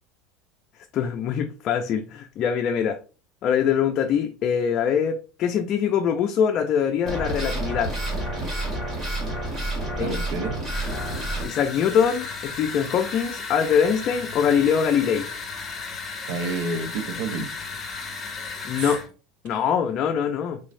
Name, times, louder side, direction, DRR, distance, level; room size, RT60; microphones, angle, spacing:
voice 1, 0.9-3.0 3.4-7.9 10.0-10.2 11.4-15.3 18.6-19.0 19.4-20.6, left 7 dB, 40° left, 0.4 m, -23 dB
sound 1, 7.1-11.4, right 1 dB, 25° right, 1.6 m, -29 dB
voice 2, 10.0-10.6 16.3-17.5 18.8-18.9, right 3 dB, 75° right, 0.7 m, -29 dB
sound 2, 10.7-19.1, left 4 dB, 25° left, 1.7 m, -35 dB
3.8 x 3.1 x 2.6 m
supercardioid pair, 140°, 0 cm